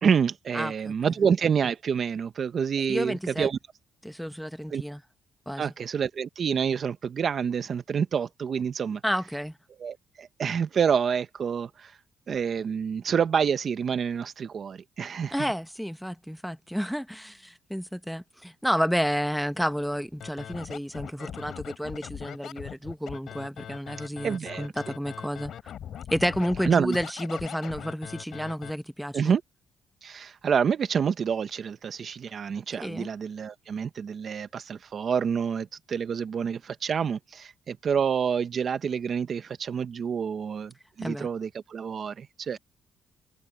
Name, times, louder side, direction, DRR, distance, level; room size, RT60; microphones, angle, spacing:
voice 1, 0.0-3.6 4.7-4.8 5.6-9.0 9.8-12.0 12.3-15.5 24.2-24.7 26.7-27.0 29.1-29.4 30.0-40.7 41.0-42.6, right 7 dB, 50° right, 0.8 m, -28 dB
voice 2, 0.5-0.9 2.9-3.5 4.0-5.0 5.5-5.7 9.0-9.5 15.3-25.5 26.1-29.3 32.8-33.1 41.0-41.3, equal, ahead, 1.0 m, -31 dB
Scratching (performance technique), 20.2-28.7, left 9 dB, 65° left, 5.5 m, -40 dB
cardioid pair, 90°, 0 cm